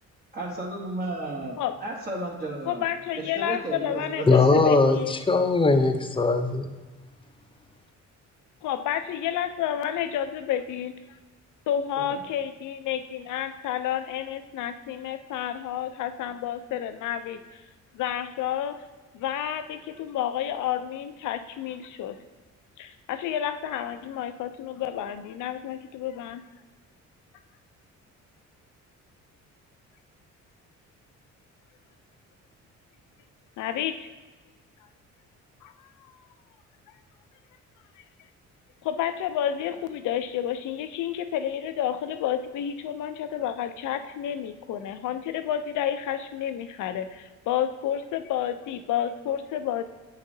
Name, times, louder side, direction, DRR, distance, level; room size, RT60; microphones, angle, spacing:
voice 1, 0.3-2.8 3.2-4.6 12.1-12.2, right 2 dB, 30° right, 1.1 m, -33 dB
voice 2, 2.7-5.1 8.6-10.9 11.7-17.6 17.9-18.8 19.1-22.2 22.8-26.4 33.6-34.1 35.6-36.1 38.8-49.8, left 10 dB, 80° left, 0.6 m, -30 dB
voice 3, 4.3-6.7, left 3 dB, 15° left, 0.6 m, -20 dB
8.1 x 6.5 x 2.7 m
cardioid pair, 90°, 30 cm